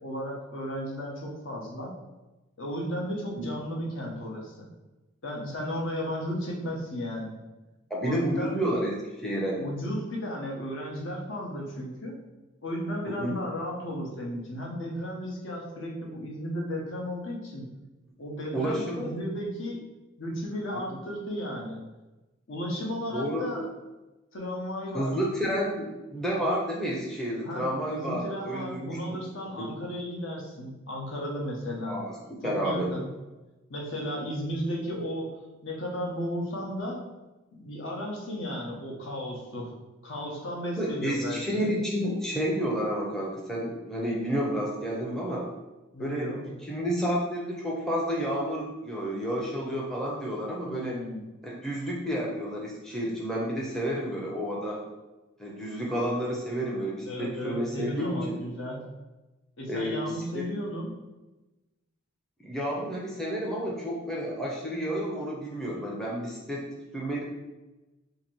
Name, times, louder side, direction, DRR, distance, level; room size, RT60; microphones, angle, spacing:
voice 1, 0.0-2.0 2.6-4.7 5.2-7.4 8.0-8.7 9.6-12.2 12.6-17.7 18.2-19.8 20.2-21.8 22.5-23.7 24.3-25.2 27.4-32.0 32.4-33.1 33.7-37.0 37.5-39.7 40.0-41.7 45.9-46.4 50.6-51.3 57.1-58.8 59.6-61.0, equal, 65° left, -1 dB, 0.8 m, -34 dB
voice 2, 7.9-9.6 13.1-13.3 18.5-19.1 20.9-21.0 23.1-23.5 24.9-29.2 29.6-29.7 31.9-32.1 32.4-32.9 40.8-45.5 46.0-51.0 51.4-54.8 55.4-58.4 59.7-60.5 62.4-66.6 66.9-67.2, equal, ahead, -3 dB, 0.5 m, -30 dB
2.8 x 2.6 x 4.3 m, 1.1 s
head